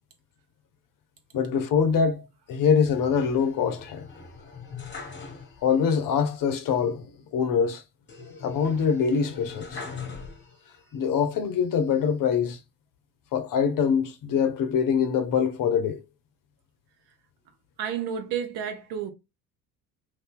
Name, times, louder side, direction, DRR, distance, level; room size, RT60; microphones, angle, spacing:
voice 1, 1.3-4.1 5.6-7.0 7.3-7.8 8.4-9.8 10.9-12.6 13.3-16.0, left 6 dB, 45° left, 0.8 m, -24 dB
sound 1, 2.8-5.9 6.2-6.3 8.1-10.8 11.4-12.2, left 5 dB, 25° left, 1.2 m, -42 dB
voice 2, 17.8-19.1, right 8 dB, 55° right, 1.0 m, -31 dB
2.7 x 2.7 x 3.6 m
hypercardioid pair, 60°, 47 cm